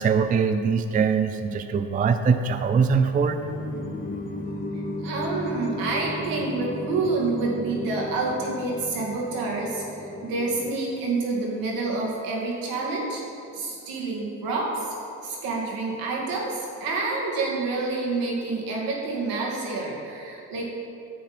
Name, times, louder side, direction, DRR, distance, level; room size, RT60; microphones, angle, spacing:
voice 1, 0.0-3.4, right 5 dB, 25° right, 9 dB, 0.4 m, -22 dB
sound 1, 2.0-10.7, left 1 dB, 25° left, 0.9 m, -35 dB
voice 2, 5.0-13.2 13.5-20.7, right 3 dB, 80° right, -3 dB, 2.3 m, -28 dB
10.0 x 7.6 x 4.3 m, 2.7 s
cardioid pair, 100°, 35 cm